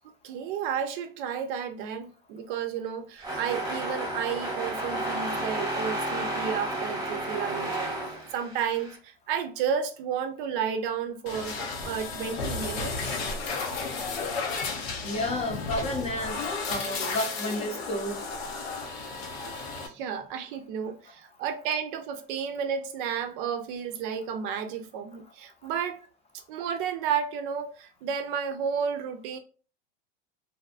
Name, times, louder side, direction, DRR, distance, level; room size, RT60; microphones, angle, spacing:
voice 1, 0.2-13.2 19.6-26.0 26.5-29.4, right 7 dB, 60° right, 0.5 m, -32 dB
sound 1, 3.2-9.0, right 1 dB, 10° right, 1.0 m, -32 dB
sound 2, 11.3-19.9, left 4 dB, 80° left, 0.8 m, -33 dB
voice 2, 15.0-16.4 16.7-18.2, left 1 dB, 20° left, 0.6 m, -31 dB
2.5 x 2.3 x 2.4 m
hypercardioid pair, 110°, 31 cm